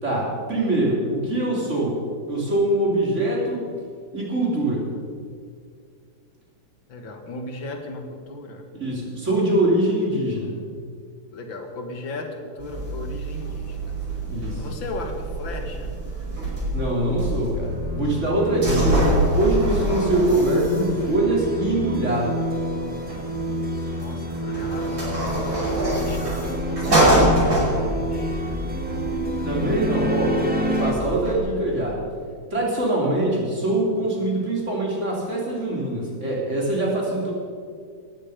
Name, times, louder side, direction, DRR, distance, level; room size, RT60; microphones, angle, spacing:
voice 1, 0.0-2.0 2.3-3.6 4.1-4.9 8.8-10.6 14.2-14.6 16.7-19.0 19.3-22.3 29.4-32.0 32.5-37.3, right 1 dB, 35° right, -3 dB, 4.2 m, -23 dB
voice 2, 6.9-8.7 11.3-14.2 14.6-15.9 24.0-25.1 26.0-28.6, left 2 dB, 85° left, 4 dB, 2.6 m, -36 dB
sound 1, 12.6-31.4, right 1 dB, 75° right, 6.6 m, -26 dB
sound 2, 17.5-30.9, equal, 5° right, 1.6 m, -28 dB
19.0 x 14.0 x 5.3 m, 2.1 s
omnidirectional pair, 2.0 m